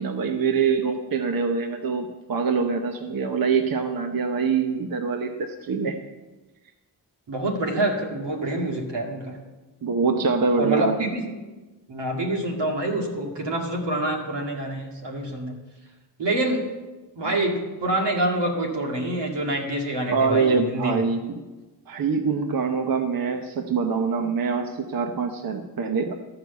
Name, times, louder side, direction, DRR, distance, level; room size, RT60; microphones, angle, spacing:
voice 1, 0.0-6.0 9.8-10.9 17.2-17.3 20.1-21.4 21.9-26.1, right 5 dB, 55° right, 5 dB, 0.8 m, -24 dB
voice 2, 7.3-9.4 10.6-11.4 11.9-15.6 16.2-16.7 17.2-21.0, right 1 dB, 90° right, 1 dB, 2.1 m, -26 dB
13.5 x 4.8 x 8.0 m, 1.2 s
wide cardioid pair, 90°, 41 cm